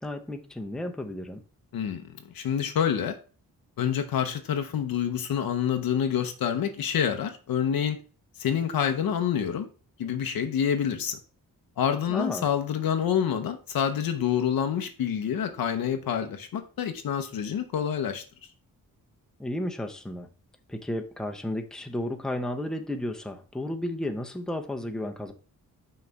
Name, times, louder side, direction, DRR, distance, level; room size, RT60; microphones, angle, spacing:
voice 1, 0.0-1.4 12.1-12.5 19.4-20.3 20.7-25.3, left 1 dB, ahead, 0.6 m, -33 dB
voice 2, 1.7-3.2 3.8-8.0 8.4-9.7 10.0-11.2 11.8-18.2, left 8 dB, 80° left, 0.7 m, -27 dB
5.8 x 3.2 x 5.1 m
wide cardioid pair, 105°, 35 cm